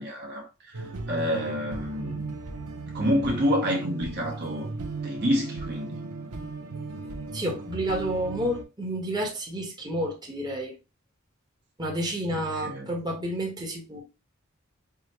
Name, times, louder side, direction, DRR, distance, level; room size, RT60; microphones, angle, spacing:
voice 1, 0.0-2.3 2.9-4.7 5.0-6.0 12.3-12.9, equal, 50° right, 0.8 m, -28 dB
sound 1, 0.7-8.6, right 3 dB, 90° right, 0.7 m, -36 dB
voice 2, 7.3-10.7 11.8-14.0, right 1 dB, 20° right, 0.9 m, -30 dB
4.7 x 2.0 x 2.9 m
head